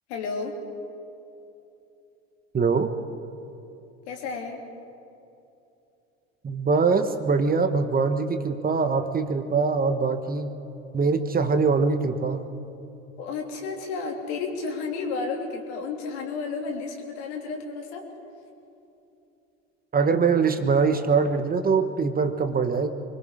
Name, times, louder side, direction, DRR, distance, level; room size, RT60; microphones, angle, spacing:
voice 1, 0.1-0.6 4.1-4.6 13.2-18.1, left 4 dB, 75° left, 2 dB, 3.0 m, -32 dB
voice 2, 2.5-2.9 6.4-10.5 10.9-12.5 19.9-22.9, right 4 dB, 25° right, 8 dB, 1.3 m, -23 dB
24.0 x 21.5 x 5.0 m, 2.9 s
hypercardioid pair, 80°, 34 cm